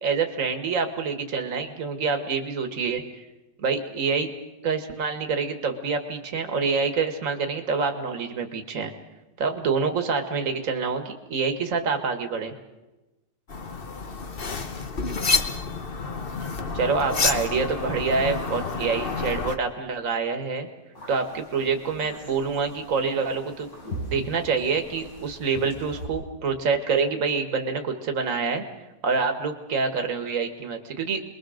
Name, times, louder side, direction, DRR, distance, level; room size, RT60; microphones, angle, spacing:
voice 1, 0.0-3.0 3.6-4.3 4.6-8.9 9.4-12.5 16.7-20.7 21.1-23.7 24.1-28.6 29.0-31.2, right 5 dB, 45° right, 5 dB, 2.0 m, -26 dB
sound 1, 13.5-19.6, left 4 dB, 35° left, 1.2 m, -29 dB
sound 2, 21.0-26.1, equal, 85° left, 8.7 m, -40 dB
28.0 x 22.0 x 6.5 m, 1.1 s
omnidirectional pair, 1.9 m